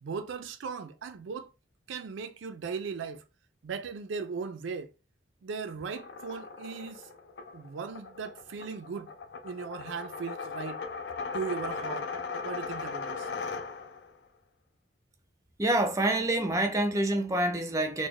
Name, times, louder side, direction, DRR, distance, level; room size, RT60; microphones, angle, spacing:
voice 1, 0.0-1.5 1.9-3.2 3.6-4.9 5.4-7.1 7.5-9.1 9.4-10.8 11.3-12.1 12.4-13.3, right 5 dB, 75° right, 0.4 m, -37 dB
sound 1, 5.8-14.1, left 4 dB, 60° left, 0.4 m, -38 dB
voice 2, 15.6-18.1, right 1 dB, 15° right, 0.4 m, -27 dB
3.9 x 2.1 x 3.1 m
head